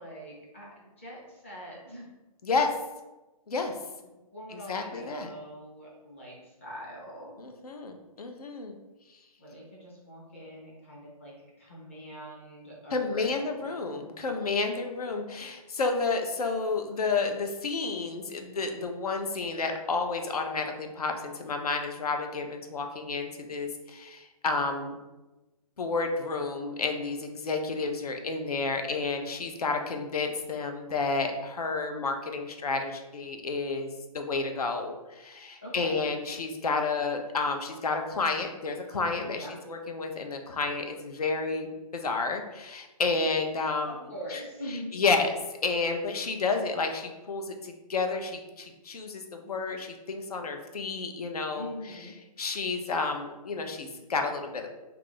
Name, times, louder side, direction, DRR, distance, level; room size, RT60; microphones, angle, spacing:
voice 1, 0.0-2.1 4.3-7.4 9.4-11.3 11.6-13.7 35.6-36.0 39.2-39.6 43.6-44.9 51.5-52.1, equal, 20° left, -5 dB, 0.6 m, -43 dB
voice 2, 4.5-5.3 7.4-8.8 12.9-25.0 25.8-43.9 44.3-44.4 44.9-51.7 52.4-54.7, left 4 dB, 75° left, 4 dB, 0.6 m, -31 dB
2.9 x 2.4 x 3.8 m, 1.1 s
hypercardioid pair, 180°, 19 cm